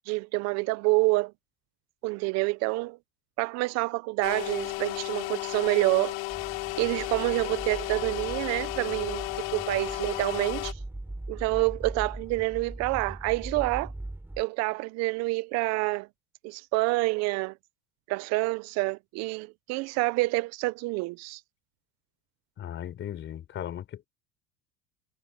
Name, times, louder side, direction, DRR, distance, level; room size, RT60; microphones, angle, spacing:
voice 1, 0.1-1.3 2.0-3.0 3.4-6.2 6.8-9.3 9.5-10.7 11.3-13.9 14.4-16.1 16.4-17.5 18.1-21.4, right 23 dB, 65° right, 0.6 m, -27 dB
sound 1, 4.2-10.7, left 26 dB, 80° left, 2.8 m, -34 dB
sound 2, 6.3-14.4, right 2 dB, 5° right, 6.3 m, -40 dB
voice 2, 22.6-24.1, left 10 dB, 40° left, 4.1 m, -37 dB
supercardioid pair, 125°, 29 cm